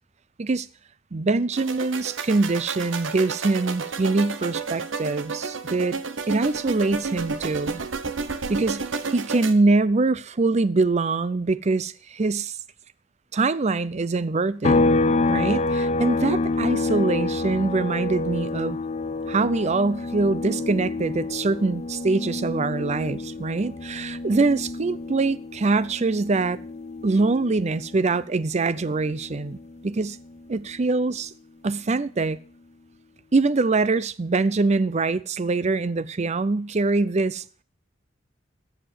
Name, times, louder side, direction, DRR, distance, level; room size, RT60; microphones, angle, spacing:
voice 1, 1.1-6.0 6.3-7.8 8.5-8.8 9.1-12.6 13.3-14.9 15.3-18.8 19.3-26.6 27.0-29.6 29.8-30.2 30.5-31.3 31.6-32.4 33.3-37.4, right 3 dB, 35° right, 0.5 m, -23 dB
sound 1, 1.5-9.5, right 4 dB, 80° right, 1.0 m, -31 dB
sound 2, 14.6-28.2 28.5-30.7, left 3 dB, 35° left, 0.5 m, -28 dB
14.5 x 5.1 x 7.7 m
head